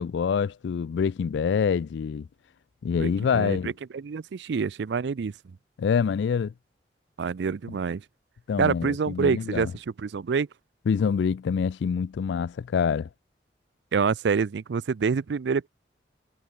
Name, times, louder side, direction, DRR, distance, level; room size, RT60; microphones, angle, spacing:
voice 1, 0.0-2.3 2.8-3.7 5.8-6.5 8.5-9.7 10.9-13.1, left 6 dB, 75° left, 0.3 m, -26 dB
voice 2, 3.0-5.3 7.2-8.0 8.6-10.5 13.9-15.7, right 5 dB, 70° right, 0.4 m, -27 dB
head